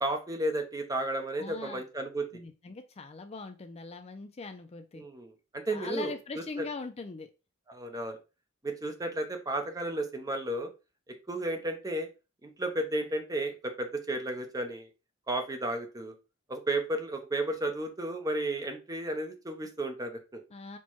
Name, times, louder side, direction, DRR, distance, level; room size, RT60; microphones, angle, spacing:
voice 1, 0.0-2.3 5.0-6.6 7.7-8.2 8.6-10.7 11.3-12.1 12.4-14.9 15.3-16.1 16.5-20.4, right 1 dB, 15° right, 5 dB, 0.6 m, -33 dB
voice 2, 1.4-1.8 2.3-5.0 5.7-7.3 20.5-20.8, left 4 dB, 30° left, 7 dB, 0.4 m, -41 dB
4.4 x 2.2 x 4.4 m, 0.30 s
head